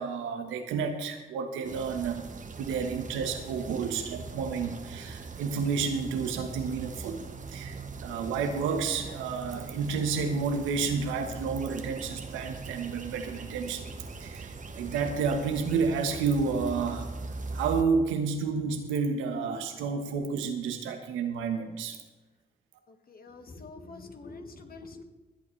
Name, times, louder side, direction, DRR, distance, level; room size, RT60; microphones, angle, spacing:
voice 1, 0.0-2.2 2.6-7.2 7.5-13.9 14.2-17.1 17.5-22.0, right 5 dB, 80° right, 5 dB, 1.3 m, -30 dB
sound 1, 1.6-17.8, right 3 dB, 40° right, 1.2 m, -41 dB
voice 2, 22.9-25.0, left 3 dB, 50° left, 5 dB, 1.9 m, -46 dB
25.0 x 8.4 x 3.3 m, 1.2 s
hypercardioid pair, 45°, 20 cm